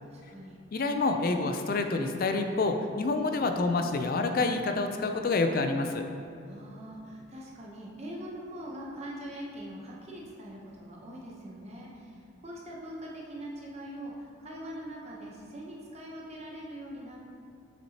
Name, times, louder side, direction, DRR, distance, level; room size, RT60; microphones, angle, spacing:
voice 1, 0.1-0.6 6.4-17.2, right 1 dB, 30° right, -3 dB, 0.8 m, -42 dB
voice 2, 0.7-6.0, left 3 dB, 45° left, 6 dB, 0.4 m, -28 dB
7.3 x 6.0 x 2.8 m, 2.6 s
head